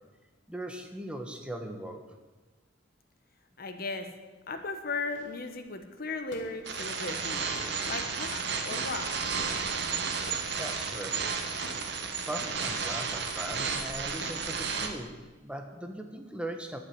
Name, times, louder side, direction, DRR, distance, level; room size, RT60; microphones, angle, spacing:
voice 1, 0.5-2.0 10.2-11.2 12.3-15.1 15.4-16.8, right 1 dB, 5° right, 4 dB, 1.3 m, -39 dB
voice 2, 3.6-4.1 4.5-7.4 7.9-9.1, left 3 dB, 50° left, 8 dB, 1.2 m, -36 dB
sound 1, 5.1-15.2, left 1 dB, 65° left, 2.2 m, -51 dB
sound 2, 6.7-14.9, right 5 dB, 60° right, 1.6 m, -33 dB
11.0 x 9.1 x 9.5 m, 1.2 s
head